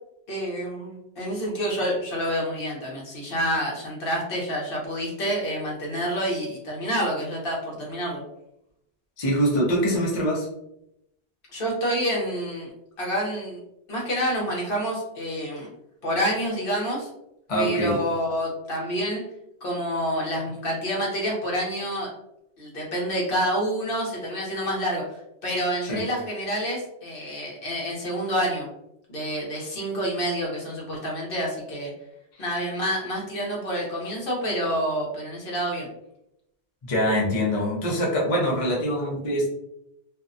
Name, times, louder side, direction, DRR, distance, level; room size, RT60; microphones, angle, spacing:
voice 1, 0.3-8.2 11.5-12.7 13.0-13.6 13.9-15.7 16.0-17.1 17.5-19.2 19.6-22.1 22.6-25.0 25.4-28.7 29.1-31.9 32.4-35.9, equal, 55° left, -3 dB, 0.9 m, -28 dB
voice 2, 9.2-10.5 17.5-18.0 25.8-26.0 36.8-39.5, equal, 40° left, -4 dB, 0.6 m, -24 dB
2.6 x 2.1 x 2.5 m, 0.82 s
omnidirectional pair, 1.2 m